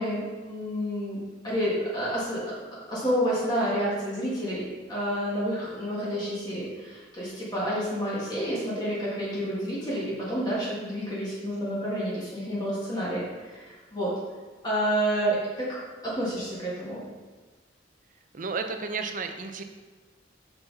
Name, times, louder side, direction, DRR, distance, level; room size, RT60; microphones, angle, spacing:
voice 1, 0.0-2.4 2.8-14.1 14.6-15.8 16.0-17.0, equal, 25° left, -8 dB, 1.8 m, -29 dB
voice 2, 18.3-19.6, right 4 dB, 45° right, 6 dB, 0.6 m, -32 dB
5.8 x 5.7 x 4.0 m, 1.4 s
head